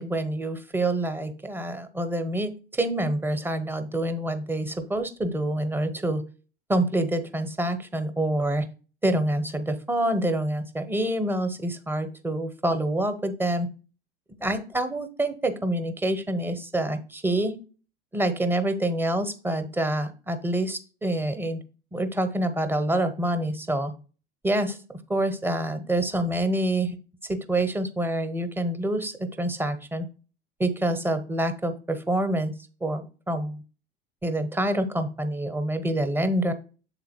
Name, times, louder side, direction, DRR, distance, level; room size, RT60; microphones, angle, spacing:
voice 1, 0.0-6.2 6.7-8.6 9.0-13.7 14.4-17.6 18.1-21.6 21.9-23.9 24.4-24.8 25.1-27.0 27.3-30.1 30.6-32.5 32.8-33.6 34.2-36.5, right 1 dB, 5° right, 9 dB, 0.8 m, -27 dB
7.4 x 4.0 x 4.3 m, 0.36 s
figure-of-eight pair, 75°, 29 cm